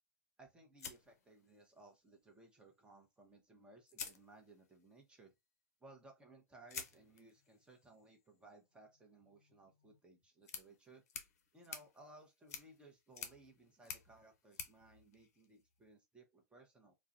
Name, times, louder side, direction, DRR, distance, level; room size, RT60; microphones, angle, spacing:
voice 1, 0.4-5.3 5.8-11.0 11.5-16.9, right 2 dB, 10° right, 0.8 m, -61 dB
sound 1, 0.8-1.9 3.3-3.4 3.9-4.9 6.7-15.9, left 6 dB, 60° left, 0.6 m, -52 dB
2.4 x 2.1 x 2.5 m
figure-of-eight pair, 100°, 9 cm